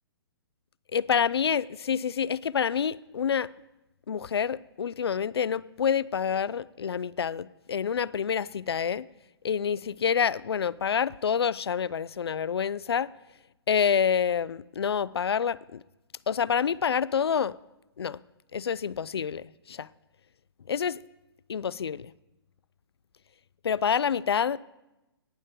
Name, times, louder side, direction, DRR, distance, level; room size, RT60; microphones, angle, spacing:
voice 1, 0.9-3.5 4.1-9.1 9.4-13.1 13.7-15.8 16.3-17.6 18.0-18.2 18.5-19.9 20.7-21.0 21.5-22.1 23.6-24.6, left 7 dB, 70° left, 0.4 m, -27 dB
18.0 x 6.5 x 5.0 m
figure-of-eight pair, 125°, 14 cm